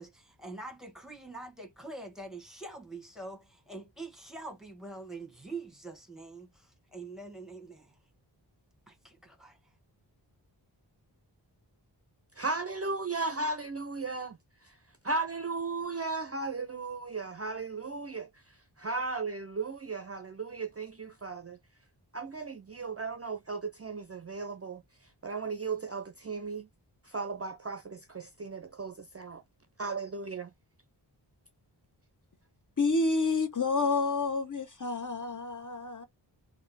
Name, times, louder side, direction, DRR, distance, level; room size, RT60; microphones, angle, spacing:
voice 1, 0.0-8.0 8.9-9.6, right 2 dB, ahead, 1.3 m, -44 dB
voice 2, 12.4-14.4 15.0-18.3 18.8-21.6 22.1-24.8 25.2-26.7 27.1-29.4 29.8-30.5, right 3 dB, 35° right, 0.5 m, -35 dB
voice 3, 32.8-36.1, left 3 dB, 45° left, 0.8 m, -29 dB
3.2 x 2.6 x 4.0 m
wide cardioid pair, 75°, 44 cm